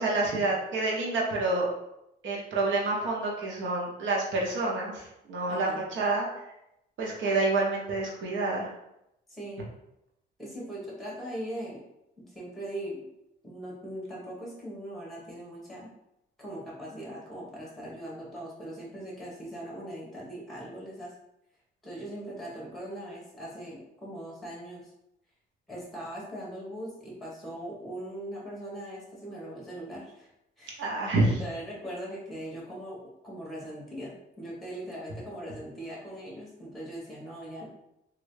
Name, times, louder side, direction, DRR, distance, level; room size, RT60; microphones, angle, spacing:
voice 1, 0.0-1.7 2.2-6.3 7.0-8.7 30.8-31.4, right 2 dB, 70° right, -3 dB, 1.0 m, -28 dB
voice 2, 5.5-5.8 9.3-9.6 10.4-11.8 12.2-13.0 13.4-15.9 16.4-21.1 21.8-24.9 25.7-30.3 30.6-30.8 31.2-37.7, right 1 dB, ahead, -4 dB, 1.5 m, -40 dB
3.1 x 2.6 x 3.2 m, 0.83 s
cardioid pair, 90°, 20 cm